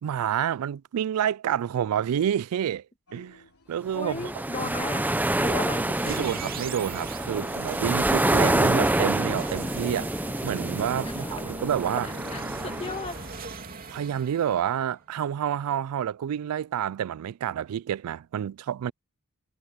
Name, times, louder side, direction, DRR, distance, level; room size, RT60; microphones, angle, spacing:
voice 1, 0.0-2.8 3.1-3.4 3.7-4.3 6.1-10.1 10.4-12.2 13.9-18.9, right 9 dB, 80° right, 0.3 m, -28 dB
sound 1, 3.1-8.7, left 3 dB, 80° left, 3.2 m, -57 dB
voice 2, 3.9-5.1 5.4-6.3 11.0-11.3 12.0-13.2, left 2 dB, 25° left, 2.4 m, -35 dB
sound 2, 4.0-13.3, right 1 dB, 10° right, 0.6 m, -27 dB
sound 3, 5.9-15.2, right 4 dB, 40° right, 3.0 m, -40 dB
head